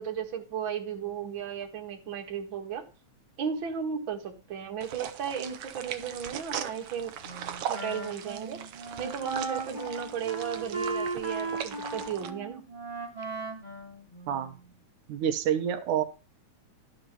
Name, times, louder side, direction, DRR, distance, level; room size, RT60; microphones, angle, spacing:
voice 1, 0.0-2.8 3.4-7.1 7.7-8.6 9.0-12.7, right 7 dB, 45° right, 2 dB, 2.4 m, -35 dB
sound 1, 4.8-12.3, right 9 dB, 65° right, 1.7 m, -39 dB
Wind instrument woodwind instrument, 7.2-14.7, right 3 dB, 10° right, 2.6 m, -37 dB
voice 2, 15.1-16.0, right 9 dB, 85° right, 7 dB, 2.5 m, -28 dB
12.5 x 5.2 x 6.7 m, 0.32 s
omnidirectional pair, 3.4 m